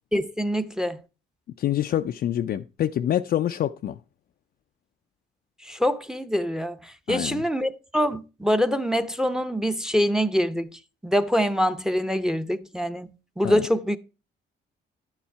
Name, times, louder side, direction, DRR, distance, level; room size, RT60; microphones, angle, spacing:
voice 1, 0.1-1.0 5.6-10.7 11.0-13.1 13.4-14.0, equal, 5° right, 0.7 m, -25 dB
voice 2, 1.6-4.0 7.1-7.4 13.4-13.7, left 11 dB, 50° left, 0.4 m, -26 dB
11.0 x 7.3 x 4.6 m
cardioid pair, 90°, 20 cm